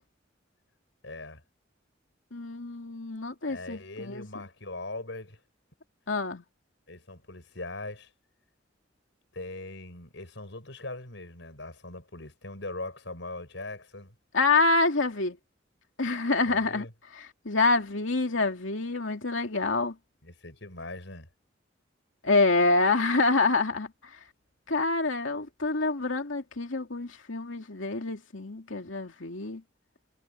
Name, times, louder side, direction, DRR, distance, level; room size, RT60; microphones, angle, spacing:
voice 1, 1.0-1.4 3.5-5.4 6.9-8.1 9.3-14.1 16.5-16.9 20.2-21.3, left 2 dB, 70° left, 7.1 m, -40 dB
voice 2, 2.3-4.4 6.1-6.4 14.3-15.4 16.0-16.8 17.4-19.9 22.2-23.9 24.7-29.6, left 3 dB, 85° left, 2.5 m, -26 dB
head